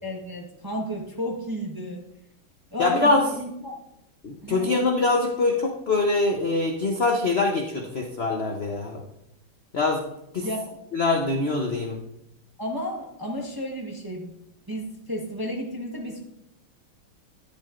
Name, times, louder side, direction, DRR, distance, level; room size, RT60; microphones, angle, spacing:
voice 1, 0.0-2.0 2.7-3.7 4.4-4.7 10.4-10.8 12.6-14.3 14.7-16.2, equal, 15° right, -2 dB, 0.9 m, -32 dB
voice 2, 2.8-3.2 4.2-9.0 9.7-10.0 10.3-10.5 10.9-12.0, left 3 dB, 55° left, 1 dB, 0.6 m, -23 dB
10.5 x 10.5 x 2.5 m, 0.84 s
omnidirectional pair, 2.3 m